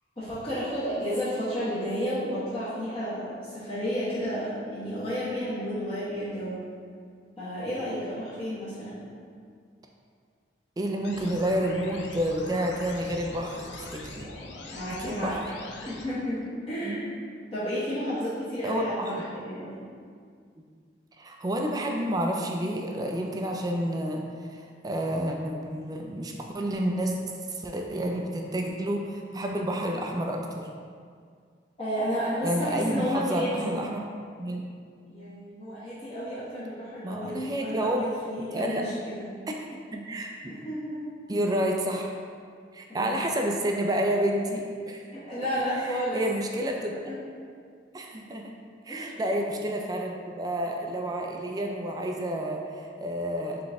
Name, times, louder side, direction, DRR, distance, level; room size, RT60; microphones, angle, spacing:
voice 1, 0.2-6.6 7.4-9.0 14.7-15.4 15.8-17.0 17.5-19.8 31.8-33.8 35.1-39.3 40.5-41.1 42.9-43.2 45.1-46.2 47.0-47.1 48.9-49.2, equal, 30° left, -13 dB, 1.0 m, -32 dB
voice 2, 10.8-14.3 15.0-15.4 16.8-17.0 18.6-19.2 21.2-27.1 27.5-30.7 32.4-34.0 34.4-34.7 37.0-38.0 38.4-38.9 39.6-40.5 41.3-42.2 42.7-45.1 45.8-47.0 47.9-48.5 48.9-53.6, right 1 dB, 20° right, 1 dB, 0.3 m, -30 dB
sound 1, 11.0-16.0, left 2 dB, 85° left, 0.5 m, -42 dB
3.9 x 3.7 x 3.4 m, 2.1 s
head